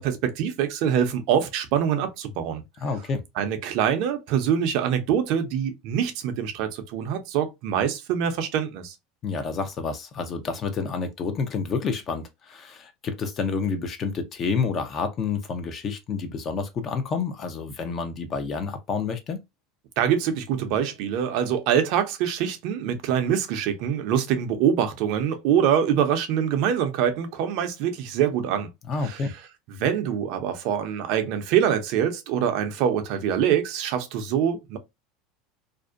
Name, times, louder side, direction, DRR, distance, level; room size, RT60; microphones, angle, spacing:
voice 1, 0.0-2.6 3.4-8.9 20.0-28.7 29.0-29.2 29.7-34.8, right 9 dB, 60° right, 0.5 m, -24 dB
voice 2, 2.8-3.2 9.2-19.4 28.9-29.3, left 5 dB, 35° left, 0.6 m, -29 dB
2.5 x 2.1 x 2.4 m
supercardioid pair, 130°, 0 cm